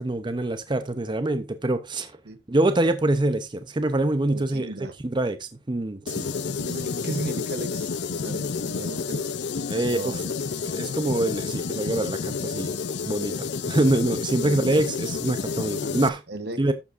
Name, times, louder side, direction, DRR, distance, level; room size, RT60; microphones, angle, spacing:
voice 1, 0.0-2.1 2.5-4.7 5.1-6.3 9.7-10.1 10.7-12.7 13.1-16.2 16.6-16.7, right 2 dB, 25° right, 0.7 m, -25 dB
voice 2, 4.3-4.9 6.6-9.3 9.9-10.2 10.9-11.0 14.4-14.9 16.3-16.6, right 2 dB, 65° right, 1.0 m, -36 dB
sound 1, 6.1-16.1, left 5 dB, 70° left, 0.5 m, -30 dB
12.0 x 7.3 x 2.5 m
head